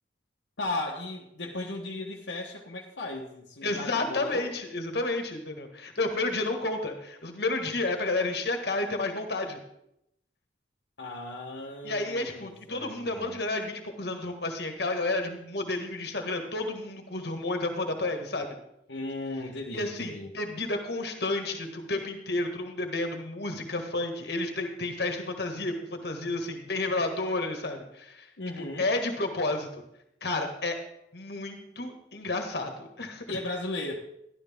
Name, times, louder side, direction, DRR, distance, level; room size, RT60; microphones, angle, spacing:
voice 1, 0.6-4.5 11.0-13.4 18.9-20.3 28.4-28.9 33.3-33.9, left 2 dB, 85° left, -1 dB, 1.2 m, -36 dB
voice 2, 3.6-9.6 11.8-18.5 19.7-25.7 26.0-28.3 28.8-29.7 30.2-30.8 31.1-33.4, left 2 dB, 65° left, 4 dB, 1.6 m, -31 dB
12.0 x 12.0 x 3.6 m, 0.79 s
head